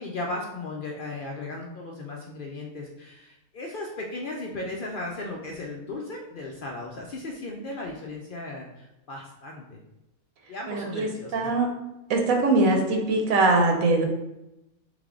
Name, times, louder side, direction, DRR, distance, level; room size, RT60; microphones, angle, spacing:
voice 1, 0.0-9.8 10.5-11.5, left 2 dB, 75° left, -1 dB, 0.4 m, -36 dB
voice 2, 10.7-11.7 12.1-14.0, right 2 dB, 75° right, 2 dB, 1.1 m, -22 dB
3.4 x 3.3 x 3.7 m, 0.92 s
omnidirectional pair, 1.5 m